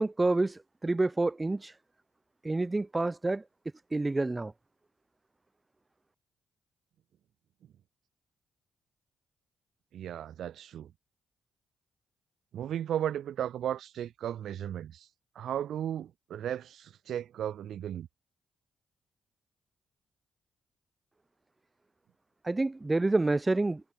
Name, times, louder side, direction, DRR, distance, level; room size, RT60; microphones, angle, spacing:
voice 1, 0.0-1.7 2.4-3.4 3.9-4.5 22.4-23.8, right 2 dB, 25° right, 1.1 m, -28 dB
voice 2, 9.9-10.9 12.5-15.1 15.4-18.1, right 10 dB, 70° right, 3.4 m, -35 dB
hypercardioid pair, 50°, 0 cm